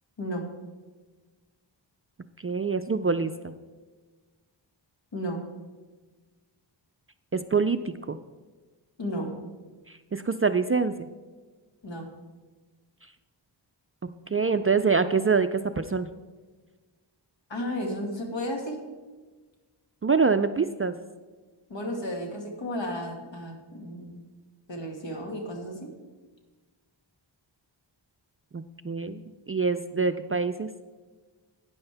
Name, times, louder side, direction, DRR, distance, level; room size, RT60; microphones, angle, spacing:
voice 1, 2.4-3.5 7.3-8.2 9.9-11.1 14.3-16.1 20.0-21.0 28.5-29.2 29.5-30.7, right 5 dB, 30° right, 9 dB, 0.3 m, -25 dB
voice 2, 9.0-9.4 11.8-12.1 17.5-18.8 21.7-24.3 24.7-25.9, equal, 65° left, 1 dB, 2.2 m, -33 dB
12.5 x 9.7 x 3.4 m, 1.3 s
wide cardioid pair, 95°, 47 cm